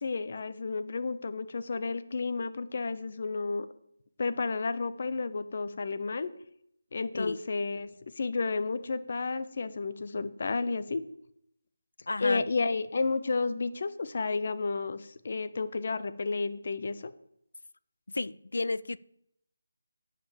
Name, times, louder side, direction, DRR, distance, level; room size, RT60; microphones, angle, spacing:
voice 1, 0.0-3.7 4.2-6.3 6.9-11.0 12.2-17.1, left 4 dB, 45° left, 0.7 m, -32 dB
voice 2, 12.1-12.4 18.1-19.0, left 2 dB, 75° left, 0.4 m, -32 dB
10.0 x 5.0 x 7.4 m
figure-of-eight pair, 170°, 0 cm